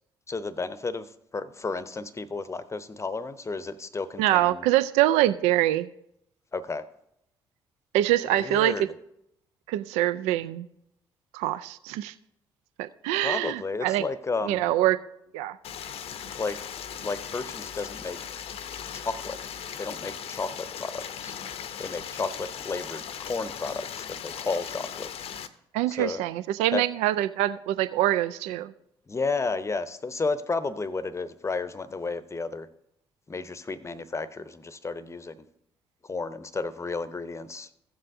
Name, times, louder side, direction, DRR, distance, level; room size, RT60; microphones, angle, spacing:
voice 1, 0.3-1.0 1.3-4.6 6.5-6.8 8.4-8.8 13.2-14.7 16.4-16.6 17.0-18.2 18.9-19.4 19.8-20.5 20.8-21.3 21.8-25.1 25.9-26.2 26.7-26.8 29.1-32.7 33.3-35.4 36.1-37.7, left 4 dB, 25° left, 14 dB, 0.7 m, -32 dB
voice 2, 4.2-5.9 7.9-8.9 9.7-10.7 11.3-12.1 12.8-14.1 14.4-15.0 15.3-15.6 25.7-28.7, right 14 dB, 65° right, 14 dB, 0.4 m, -24 dB
Stream, 15.6-25.5, left 8 dB, 55° left, 0.7 m, -38 dB
15.5 x 7.5 x 2.6 m, 0.77 s
figure-of-eight pair, 45°, 12 cm